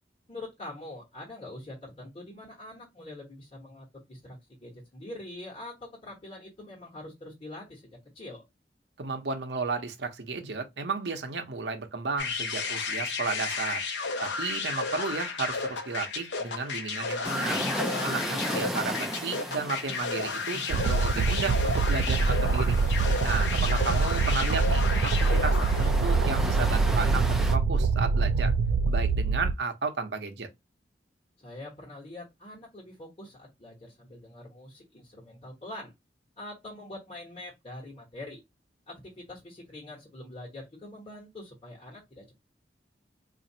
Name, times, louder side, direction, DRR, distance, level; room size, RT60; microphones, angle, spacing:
voice 1, 0.3-8.4 18.1-18.5 31.4-35.9 36.4-38.4 38.9-42.3, left 1 dB, 30° left, 1.1 m, -44 dB
voice 2, 9.0-13.9 14.2-17.6 18.0-22.8 23.2-28.5 28.9-30.5, right 4 dB, 75° right, 0.7 m, -33 dB
sound 1, 12.2-26.0, left 4 dB, 85° left, 0.7 m, -33 dB
sound 2, 17.2-27.6, equal, ahead, 0.4 m, -36 dB
sound 3, 20.7-29.5, right 4 dB, 90° right, 0.3 m, -25 dB
4.0 x 2.5 x 2.7 m
head